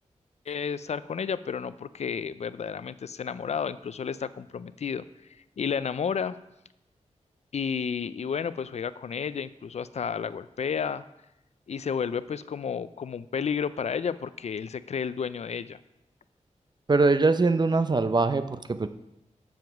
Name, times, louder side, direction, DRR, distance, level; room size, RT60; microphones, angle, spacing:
voice 1, 0.5-5.0 5.6-6.3 7.5-11.0 11.7-15.8, left 6 dB, 65° left, 15 dB, 0.4 m, -31 dB
voice 2, 16.9-18.9, right 3 dB, 35° right, 11 dB, 0.6 m, -22 dB
7.8 x 7.3 x 5.9 m, 0.90 s
wide cardioid pair, 95°, 12 cm